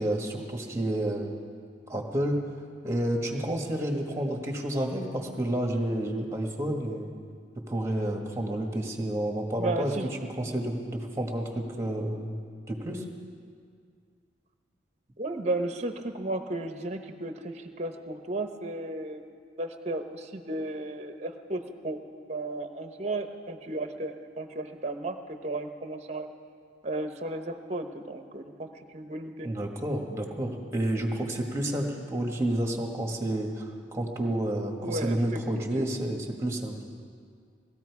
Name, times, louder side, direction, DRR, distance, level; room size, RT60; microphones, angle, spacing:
voice 1, 0.0-1.3 1.9-2.4 2.8-7.1 7.7-9.9 10.2-12.4 12.7-13.0 29.4-36.8, right 1 dB, 15° right, 2 dB, 1.5 m, -30 dB
voice 2, 9.5-10.1 10.4-10.5 15.2-19.2 19.6-22.0 22.3-26.3 26.8-29.5 34.8-35.4 35.7-36.0, right 2 dB, 40° right, 6 dB, 0.9 m, -34 dB
19.0 x 14.0 x 4.8 m, 2.1 s
head